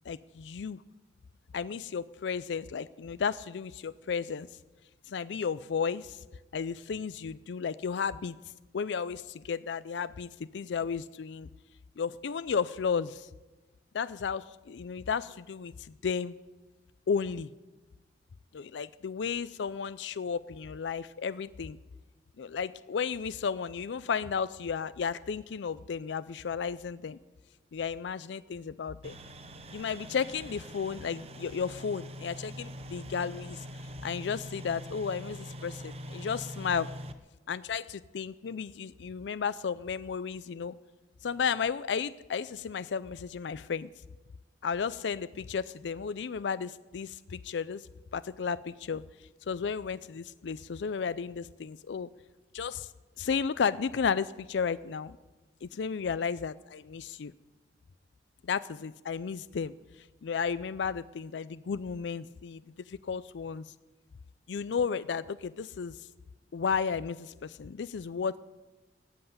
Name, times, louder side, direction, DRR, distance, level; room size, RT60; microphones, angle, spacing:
voice 1, 0.1-0.8 1.5-4.5 5.1-6.2 6.5-8.3 8.7-11.5 12.0-13.3 13.9-16.4 17.1-17.5 18.5-21.8 22.4-27.2 27.7-29.2 29.7-33.7 34.0-36.9 37.5-40.8 41.2-43.9 44.6-49.0 49.5-52.1 52.5-52.9 53.2-55.2 55.6-57.3 58.4-59.7 60.2-62.6 62.9-63.6 64.5-66.0 66.5-68.4, left 6 dB, 80° left, 15 dB, 0.4 m, -33 dB
sound 1, 29.0-37.1, equal, 35° right, 1.0 m, -43 dB
18.5 x 7.9 x 9.4 m, 1.1 s
head